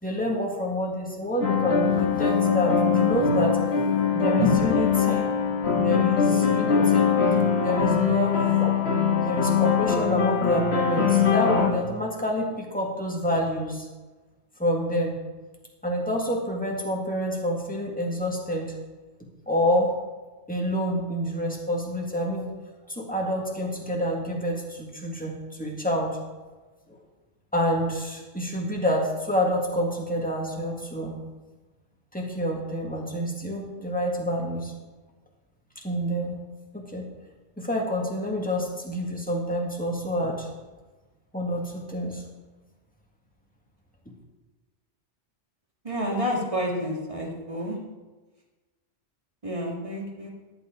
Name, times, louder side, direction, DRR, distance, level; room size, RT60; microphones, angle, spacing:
voice 1, 0.0-3.6 4.1-5.3 5.7-7.1 7.6-8.5 9.2-13.9 14.6-15.2 15.8-18.7 19.5-19.9 20.5-22.5 22.9-26.2 27.5-31.2 32.1-34.7 35.8-36.4 36.7-37.0 37.6-40.5 41.3-42.2, equal, 5° left, -1 dB, 2.0 m, -27 dB
sound 1, 1.4-11.7, left 6 dB, 60° left, 1.6 m, -22 dB
sound 2, 2.6-2.7 3.4-3.5 4.3-4.4 5.1-5.2 6.0-6.1 6.8-6.9 7.7-7.8 8.6-8.7 9.6-9.7, left 2 dB, 35° left, 1.2 m, -32 dB
voice 2, 45.8-47.8 49.4-50.3, equal, 25° right, -1 dB, 2.3 m, -29 dB
14.0 x 10.0 x 3.9 m, 1.2 s
omnidirectional pair, 1.2 m